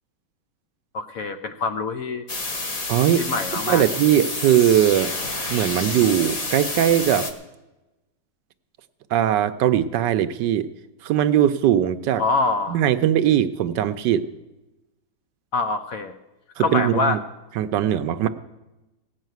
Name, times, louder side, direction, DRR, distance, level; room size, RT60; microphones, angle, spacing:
voice 1, 0.9-2.3 3.2-3.8 12.2-12.8 15.5-16.1 16.6-17.2, left 3 dB, 65° left, 8 dB, 0.9 m, -25 dB
sound 1, 2.3-7.3, left 2 dB, 25° left, 0.8 m, -29 dB
voice 2, 2.9-3.3 3.5-5.1 5.5-7.3 9.1-10.7 11.0-12.2 12.7-14.3 16.6-17.2 17.6-18.3, right 11 dB, 75° right, 12 dB, 1.2 m, -20 dB
16.5 x 6.5 x 9.2 m, 1.0 s
omnidirectional pair, 2.0 m